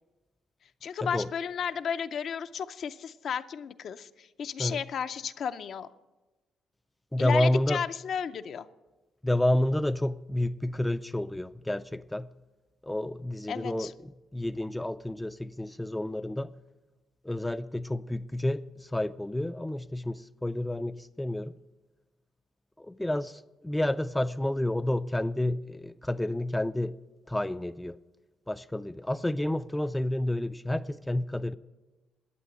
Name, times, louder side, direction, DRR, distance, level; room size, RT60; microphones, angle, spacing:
voice 1, 0.8-5.9 7.2-8.7 13.5-13.9, left 7 dB, 60° left, 0.5 m, -33 dB
voice 2, 7.1-7.8 9.2-12.3 12.8-13.9 14.3-16.5 17.2-21.5 22.8-26.9 27.3-28.0 28.5-31.5, left 1 dB, 10° left, 0.3 m, -30 dB
11.0 x 8.7 x 7.9 m
cardioid pair, 90°, 0 cm